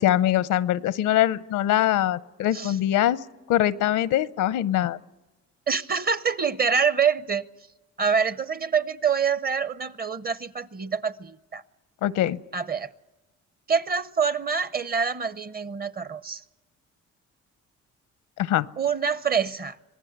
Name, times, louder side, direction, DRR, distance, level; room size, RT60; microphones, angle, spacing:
voice 1, 0.0-3.2 3.5-5.0 12.0-12.4 18.4-18.7, left 12 dB, 85° left, 0.7 m, -23 dB
voice 2, 5.7-7.5 8.0-11.6 12.5-12.9 13.7-16.4 18.8-19.8, right 6 dB, 30° right, 0.8 m, -26 dB
26.0 x 18.5 x 8.0 m
cardioid pair, 90°, 30 cm